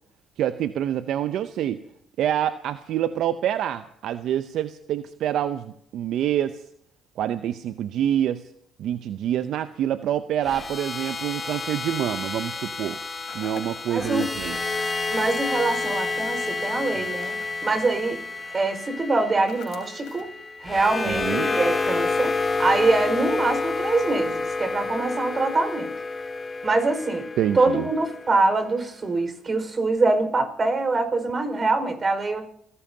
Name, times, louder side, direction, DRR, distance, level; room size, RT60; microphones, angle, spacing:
voice 1, 0.4-1.8 2.2-6.6 7.2-8.5 8.8-13.0 13.3-14.8 21.1-21.5 27.4-27.9, right 11 dB, 70° right, 11 dB, 0.6 m, -26 dB
sound 1, 10.4-28.6, left 3 dB, 30° left, 2.9 m, -29 dB
sound 2, 13.3-14.5 16.8-17.6 19.5-20.4, left 8 dB, 70° left, 3.7 m, -45 dB
voice 2, 13.9-14.3 15.1-17.3 17.6-18.2 18.5-20.3 20.6-25.9 26.6-32.4, right 3 dB, 40° right, 8 dB, 4.9 m, -24 dB
29.5 x 17.0 x 2.8 m, 0.70 s
supercardioid pair, 60°, 0 cm